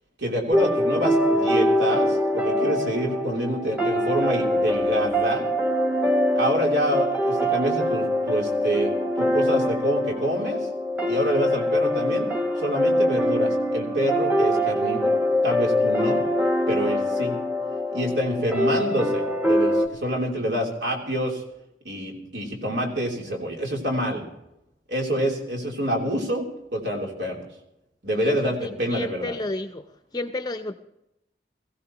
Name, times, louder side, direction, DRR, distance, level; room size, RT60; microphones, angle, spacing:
voice 1, 0.2-5.5 6.3-8.9 9.2-10.6 11.1-12.3 12.6-15.2 15.4-16.2 16.7-17.4 17.9-21.4 21.8-24.2 24.9-27.4 28.0-29.3, equal, 85° right, -1 dB, 3.3 m, -27 dB
sound 1, 0.5-19.9, equal, 10° right, 0.8 m, -23 dB
voice 2, 28.1-29.8 30.1-30.7, left 1 dB, 25° left, 8 dB, 0.6 m, -31 dB
22.0 x 15.5 x 3.0 m, 0.85 s
head